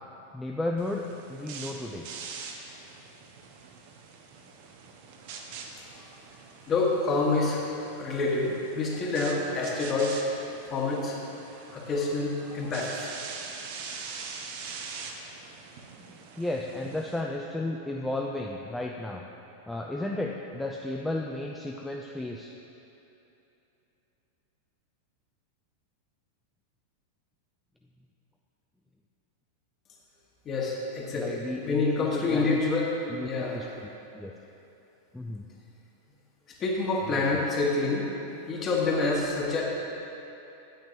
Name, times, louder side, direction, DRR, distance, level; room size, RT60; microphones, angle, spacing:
voice 1, 0.3-2.1 16.4-19.3 19.7-22.5 31.1-32.6 33.1-33.7 34.1-34.3 35.1-35.5 37.1-37.5, left 1 dB, 5° left, 0 dB, 0.4 m, -33 dB
sound 1, 0.8-17.2, right 5 dB, 50° right, 0.7 m, -44 dB
voice 2, 6.7-7.6 8.0-10.2 10.7-11.2 11.7-13.1 30.4-32.9 33.2-33.6 36.5-39.6, left 3 dB, 25° left, -2 dB, 1.2 m, -27 dB
9.0 x 8.8 x 2.7 m, 2.9 s
figure-of-eight pair, 90°, 0 cm